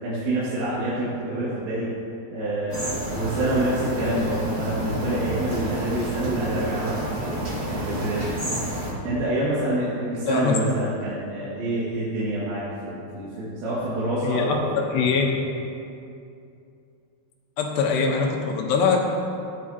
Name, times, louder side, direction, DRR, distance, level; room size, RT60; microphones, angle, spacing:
voice 1, 0.0-1.9 2.3-7.0 7.7-8.2 9.0-15.1, right 1 dB, 85° right, -10 dB, 4.5 m, -27 dB
sound 1, 2.7-8.9, right 1 dB, 35° right, 1.1 m, -29 dB
voice 2, 14.2-15.3 17.6-19.0, left 5 dB, 75° left, 0 dB, 3.2 m, -22 dB
15.5 x 11.0 x 2.9 m, 2.6 s
omnidirectional pair, 4.9 m